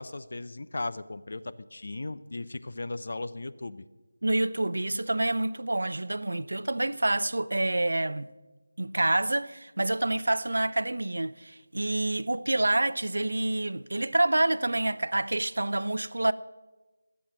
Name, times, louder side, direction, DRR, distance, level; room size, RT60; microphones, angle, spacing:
voice 1, 0.0-3.8, left 2 dB, 60° left, 0.6 m, -37 dB
voice 2, 4.2-8.3 8.8-16.3, right 2 dB, 80° right, 0.6 m, -27 dB
21.5 x 7.2 x 6.0 m
figure-of-eight pair, 170°, 0 cm